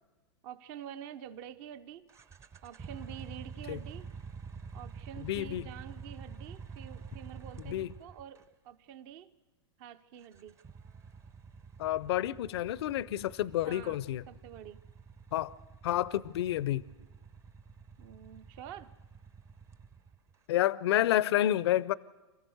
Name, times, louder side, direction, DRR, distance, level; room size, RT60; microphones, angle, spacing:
voice 1, 0.4-2.1 2.6-4.1 4.7-9.3 9.8-10.6 13.6-14.0 14.3-14.8 18.0-18.9, right 10 dB, 45° right, 0.8 m, -47 dB
sound 1, 2.1-8.5 10.2-20.3, right 5 dB, 20° right, 0.7 m, -48 dB
voice 2, 5.2-5.7 7.7-7.9 11.8-14.2 15.3-15.5 15.8-16.9 20.5-21.9, left 13 dB, 65° left, 0.6 m, -29 dB
26.5 x 14.5 x 7.9 m
hypercardioid pair, 120°, 15 cm